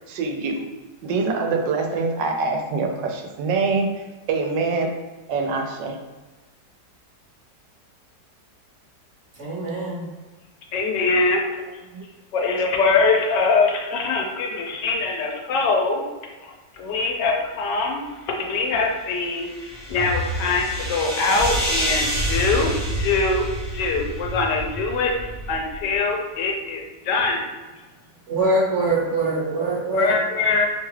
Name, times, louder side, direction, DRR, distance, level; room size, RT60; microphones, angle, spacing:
voice 1, 0.1-0.6 1.0-4.9 5.3-6.0 11.9-12.1, right 4 dB, 85° right, 2 dB, 1.2 m, -24 dB
voice 2, 9.4-10.1 28.3-30.2, right 2 dB, 50° right, -5 dB, 1.1 m, -23 dB
voice 3, 10.7-11.4 12.3-16.0 16.4-18.0 18.4-22.7 23.0-23.5 23.7-25.1 25.5-27.4 29.9-30.7, left 4 dB, 80° left, 1 dB, 1.2 m, -23 dB
sound 1, 18.9-24.5, equal, 15° right, 0.7 m, -30 dB
sound 2, 19.7-26.1, equal, 55° left, 0.7 m, -30 dB
3.1 x 2.3 x 3.1 m, 1.2 s
omnidirectional pair, 1.9 m